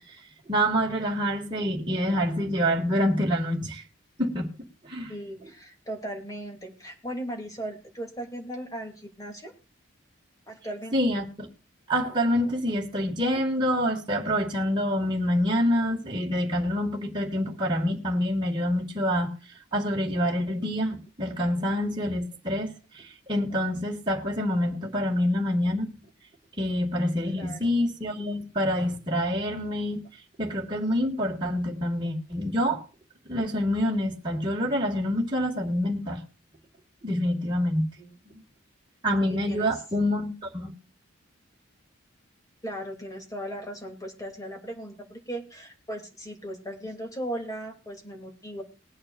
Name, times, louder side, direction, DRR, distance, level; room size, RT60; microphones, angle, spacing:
voice 1, 0.5-3.8 4.2-4.5 4.8-5.1 10.9-11.5 11.9-19.3 19.7-23.0 23.3-25.9 26.6-30.0 30.4-32.8 33.3-36.2 37.0-37.9 38.3-38.4 39.0-40.7, equal, 20° right, 2.2 m, -26 dB
voice 2, 5.1-9.5 10.5-11.0 27.3-27.7 38.0-38.2 39.2-39.8 42.6-48.6, right 1 dB, 15° left, 3.0 m, -37 dB
21.0 x 8.7 x 2.6 m
head